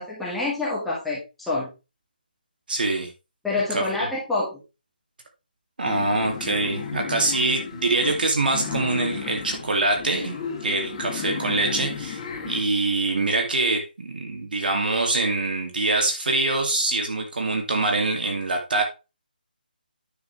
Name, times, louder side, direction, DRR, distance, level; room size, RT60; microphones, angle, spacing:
voice 1, 0.0-1.7 3.4-4.6, left 3 dB, ahead, -7 dB, 1.9 m, -27 dB
voice 2, 2.7-3.1 3.7-4.1 5.8-18.8, right 2 dB, 65° right, 3 dB, 2.5 m, -24 dB
sound 1, 5.8-12.6, left 6 dB, 25° left, 3.0 m, -33 dB
9.7 x 6.9 x 3.3 m, 0.28 s
figure-of-eight pair, 165°, 5 cm